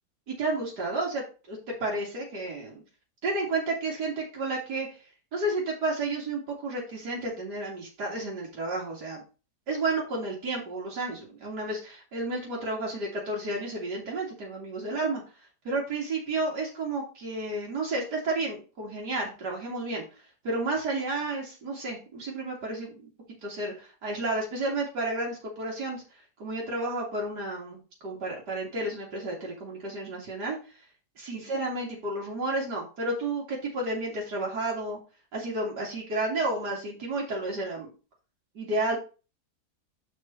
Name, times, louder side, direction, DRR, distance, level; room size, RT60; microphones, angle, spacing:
voice 1, 0.3-2.8 3.2-4.9 5.3-9.2 9.7-15.2 15.6-20.0 20.4-23.1 23.4-26.0 26.4-30.6 31.2-35.0 35.3-37.9 38.5-39.0, right 2 dB, 85° right, -3 dB, 3.0 m, -31 dB
6.5 x 5.5 x 4.3 m, 0.33 s
omnidirectional pair, 1.8 m